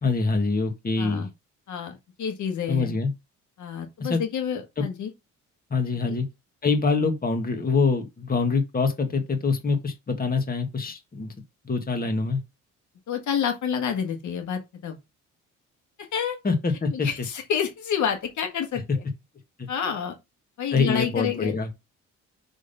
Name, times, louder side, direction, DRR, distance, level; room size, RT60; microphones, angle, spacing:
voice 1, 0.0-1.3 2.7-3.1 4.0-4.2 4.8-4.9 5.7-6.3 6.6-11.3 11.6-12.4 16.4-17.1 19.6-19.7 20.7-21.7, left 4 dB, 30° left, 1.7 m, -25 dB
voice 2, 1.0-1.3 1.7-2.9 3.6-5.1 6.1-6.2 13.1-15.0 16.0-16.4 16.9-19.0 19.7-20.2 20.6-21.5, left 7 dB, 70° left, 1.8 m, -29 dB
6.3 x 3.7 x 5.5 m
cardioid pair, 90°, 30 cm